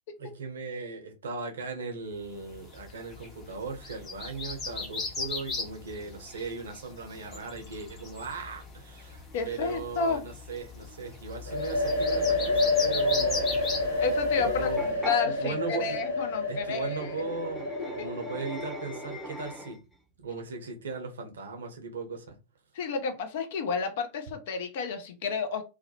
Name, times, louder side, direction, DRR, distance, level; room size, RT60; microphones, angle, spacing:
voice 1, 0.2-13.6 13.9-14.0 14.4-15.0 15.2-16.0 16.5-19.8 20.2-22.4, right 4 dB, 65° right, 0.6 m, -38 dB
sound 1, 2.4-14.9, left 4 dB, 25° left, 0.8 m, -38 dB
voice 2, 9.3-10.2 14.0-17.1 18.0-18.1 22.7-25.6, left 5 dB, 55° left, 0.5 m, -31 dB
sound 2, 11.5-19.1, left 2 dB, 80° left, 0.8 m, -29 dB
sound 3, 14.8-15.2 16.9-19.9, equal, ahead, 0.6 m, -40 dB
2.4 x 2.1 x 2.8 m
figure-of-eight pair, 90°, 0 cm